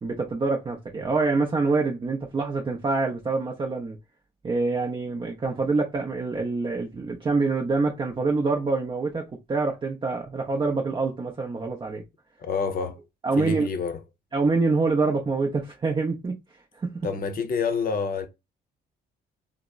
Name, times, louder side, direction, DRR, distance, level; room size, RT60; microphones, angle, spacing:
voice 1, 0.0-4.0 4.4-12.0 13.2-13.7 14.3-16.4 16.7-17.1, right 3 dB, 25° right, 0.5 m, -26 dB
voice 2, 12.4-13.0 13.4-14.0 17.0-18.3, left 5 dB, 45° left, 0.7 m, -27 dB
3.4 x 2.0 x 2.3 m
cardioid pair, 90°, 20 cm